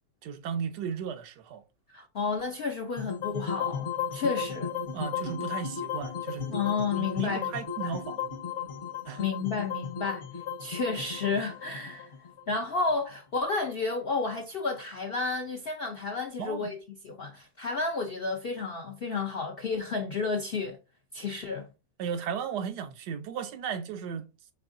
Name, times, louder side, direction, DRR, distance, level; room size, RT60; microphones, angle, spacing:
voice 1, 0.2-1.6 4.9-8.3 9.1-9.2 16.4-16.7 22.0-24.3, right 7 dB, 85° right, 1.2 m, -35 dB
voice 2, 1.9-4.7 6.5-7.5 7.8-8.0 9.2-10.2 10.6-12.1 12.5-16.8 17.0-20.8 21.1-21.7, left 4 dB, 65° left, 0.5 m, -31 dB
sound 1, 3.0-13.2, left 7 dB, 50° left, 1.0 m, -35 dB
5.6 x 3.5 x 2.5 m
omnidirectional pair, 1.7 m